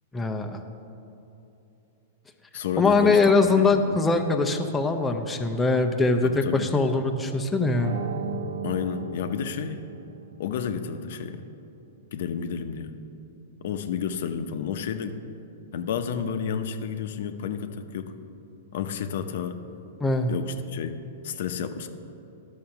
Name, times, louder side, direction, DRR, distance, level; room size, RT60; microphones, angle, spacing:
voice 1, 0.1-0.6 2.8-8.0 20.0-20.4, left 3 dB, 10° left, 4 dB, 0.5 m, -22 dB
voice 2, 2.5-4.1 6.2-6.7 8.6-9.9 10.4-11.4 12.1-12.9 13.6-15.2 15.7-18.1 18.7-19.6 20.3-21.9, left 7 dB, 65° left, 8 dB, 0.6 m, -31 dB
sound 1, 7.7-10.4, right 6 dB, 90° right, 0.9 m, -36 dB
11.0 x 6.4 x 5.8 m, 2.8 s
hypercardioid pair, 150°, 0 cm